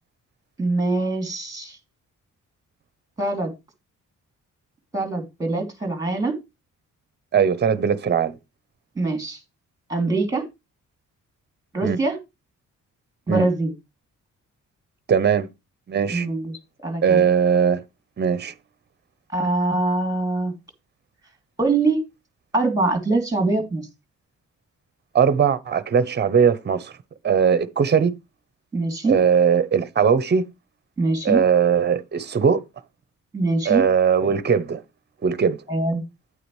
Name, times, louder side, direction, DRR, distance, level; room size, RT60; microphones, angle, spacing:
voice 1, 0.6-1.8 3.2-3.5 4.9-6.3 9.0-9.4 9.9-10.4 11.7-12.2 13.3-13.7 16.1-16.5 16.8-17.2 19.3-20.5 21.6-22.0 22.5-23.9 28.7-29.2 31.0-31.4 33.3-33.9 35.7-36.0, right 3 dB, 10° right, 2.9 m, -23 dB
voice 2, 7.3-8.3 11.8-12.0 13.3-13.5 15.1-15.5 15.9-16.3 17.0-17.8 18.2-18.5 25.1-26.9 27.2-28.2 29.1-30.4 31.2-32.6 33.6-34.8 35.2-35.6, right 7 dB, 35° right, 0.9 m, -19 dB
9.6 x 8.6 x 3.2 m
wide cardioid pair, 145°, 31 cm